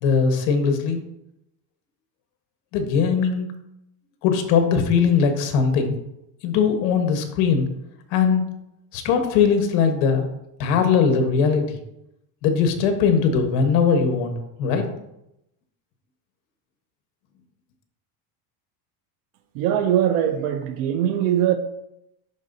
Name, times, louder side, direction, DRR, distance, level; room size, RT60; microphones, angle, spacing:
voice 1, 0.0-1.0 2.7-3.5 4.2-6.0 6.4-7.7 8.1-8.4 8.9-10.3 10.6-11.8 12.4-14.3 14.6-14.9, left 6 dB, 70° left, 1.2 m, -20 dB
voice 2, 19.5-21.6, right 10 dB, 80° right, 0.7 m, -21 dB
11.0 x 3.8 x 2.6 m
cardioid pair, 165°, 48 cm